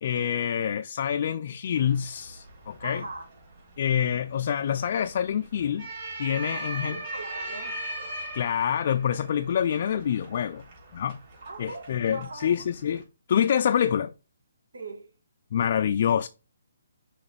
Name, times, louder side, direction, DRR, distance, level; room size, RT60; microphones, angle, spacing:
voice 1, 0.0-3.0 3.8-5.9 6.2-7.0 8.3-10.6 10.9-11.2 11.6-13.0 13.3-14.1 15.5-16.3, left 8 dB, 45° left, 0.3 m, -26 dB
sound 1, 1.8-13.0, right 1 dB, 40° right, 3.4 m, -40 dB
voice 2, 2.8-3.3 6.4-7.8 11.4-12.7 14.7-15.1, right 3 dB, 80° right, 1.3 m, -41 dB
6.1 x 3.2 x 5.1 m
hypercardioid pair, 160°, 0 cm